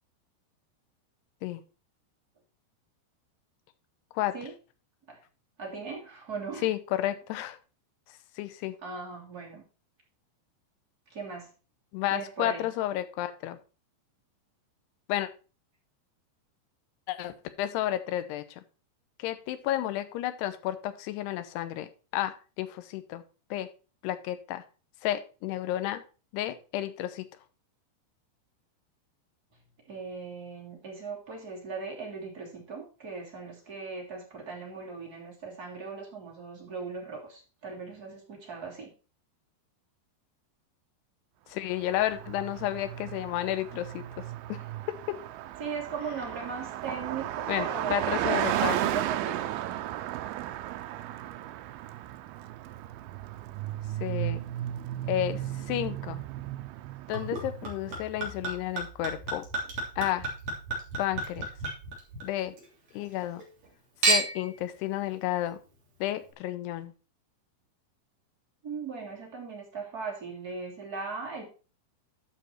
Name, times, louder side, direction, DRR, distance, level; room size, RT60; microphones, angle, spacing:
voice 1, 5.6-6.7 8.8-9.6 11.1-11.5 12.1-12.7 29.9-38.9 45.6-49.6 68.6-71.5, right 5 dB, 25° right, -2 dB, 2.6 m, -38 dB
voice 2, 6.6-7.6 8.4-8.8 11.9-13.6 15.1-15.3 17.1-18.6 19.2-23.2 23.5-23.7 24.0-24.6 25.0-26.0 26.3-27.3 41.5-44.6 44.9-45.2 47.5-48.8 54.0-54.4 55.0-56.2 57.1-59.5 60.0-60.3 61.0-61.5 62.2-62.6 62.9-63.4 64.0-65.6 66.0-66.9, left 13 dB, 80° left, 11 dB, 2.8 m, -31 dB
Car passing by, 41.8-57.8, right 13 dB, 80° right, 2.2 m, -34 dB
Chink clink / Liquid, 57.1-62.6 63.0-63.7 64.0-64.5 65.3-65.4, right 3 dB, 40° right, 4.0 m, -32 dB
12.0 x 5.8 x 4.4 m, 0.34 s
omnidirectional pair, 5.1 m